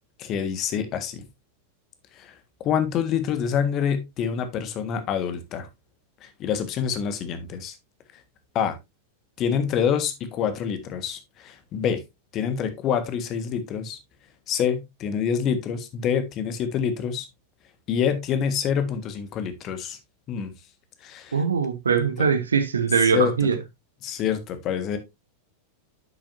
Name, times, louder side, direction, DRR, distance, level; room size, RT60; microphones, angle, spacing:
voice 1, 0.2-1.2 2.1-5.7 6.2-7.8 8.5-8.8 9.4-12.0 12.3-14.0 14.5-17.3 17.9-20.0 20.3-20.5 21.0-21.4 22.2-22.3 23.0-23.3 24.0-25.0, left 7 dB, 35° left, 1.5 m, -26 dB
voice 2, 21.3-23.6, right 6 dB, 70° right, 1.3 m, -22 dB
9.7 x 7.6 x 2.7 m
figure-of-eight pair, 90°, 0 cm